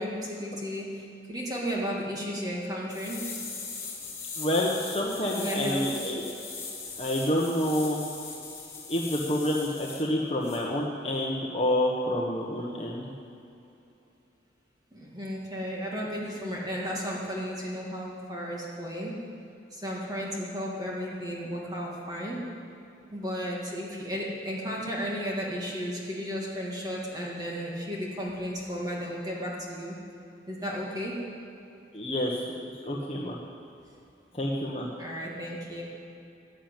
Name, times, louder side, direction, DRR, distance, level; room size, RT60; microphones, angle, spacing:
voice 1, 0.0-3.2 5.3-6.2 14.9-19.2 19.7-22.4 23.1-30.0 30.5-31.2 35.0-35.8, equal, 20° right, -4 dB, 2.2 m, -34 dB
sound 1, 2.9-10.0 10.4-10.6, left 4 dB, 15° left, 3.2 m, -40 dB
voice 2, 4.4-6.3 7.0-8.0 8.9-13.0 31.9-32.4 32.8-33.4 34.4-34.9, left 1 dB, 30° left, -3 dB, 1.2 m, -28 dB
15.0 x 9.2 x 9.1 m, 2.8 s
head